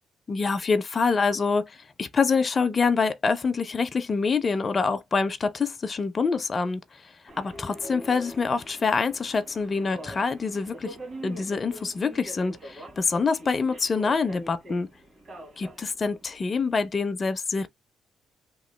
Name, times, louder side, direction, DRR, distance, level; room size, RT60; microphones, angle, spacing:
voice 1, 0.3-6.8 7.4-11.0 11.2-14.9 15.6-17.7, left 4 dB, 35° left, 0.4 m, -26 dB
Subway metro underground, 7.3-17.0, right 1 dB, 50° right, 1.3 m, -43 dB
2.9 x 2.2 x 3.1 m
cardioid pair, 90°, 0 cm